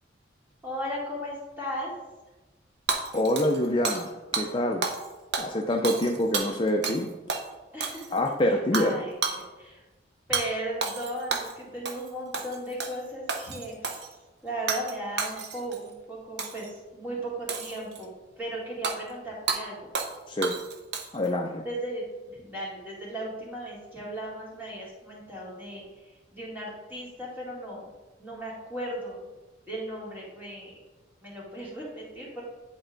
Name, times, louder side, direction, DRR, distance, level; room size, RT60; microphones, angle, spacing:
voice 1, 0.6-1.9 7.7-8.0 8.4-9.8 10.3-14.1 14.4-16.7 16.9-18.1 18.4-19.8 21.6-22.1 22.4-27.9 28.2-29.2 29.7-30.8 31.2-32.4, right 1 dB, 10° right, -6 dB, 2.3 m, -36 dB
Hammer / Shatter, 2.9-4.1 4.3-4.5 4.8-5.1 5.3-7.0 7.3-7.4 7.8-8.3 8.7-8.9 9.2-9.4 10.3-10.5 10.8-11.5 11.9-12.1 12.3-13.0 13.3-14.1 14.7-14.9 15.2-15.8 16.4-16.7 17.5-18.0 18.8-19.0 19.5-19.6 19.9-20.2 20.4-21.3, right 5 dB, 60° right, 0.8 m, -31 dB
voice 2, 3.1-4.9 5.4-7.1 8.1-9.0 20.3-20.6 21.1-21.6, left 1 dB, 25° left, 2 dB, 0.4 m, -26 dB
10.0 x 4.4 x 3.9 m, 1.2 s
head